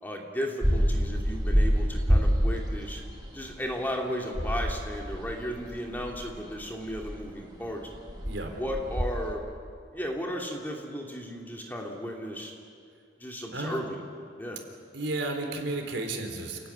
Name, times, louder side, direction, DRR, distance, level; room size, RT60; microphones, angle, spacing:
voice 1, 0.0-3.0 3.3-7.9 8.5-9.4 9.9-12.5 13.2-14.0 14.4-14.6, equal, 10° left, 0 dB, 2.5 m, -35 dB
sound 1, 0.6-9.3, equal, 20° right, 2.1 m, -27 dB
voice 2, 13.5-13.8 14.9-16.7, right 2 dB, 75° right, 3 dB, 3.9 m, -32 dB
29.0 x 16.5 x 9.8 m, 2.3 s
head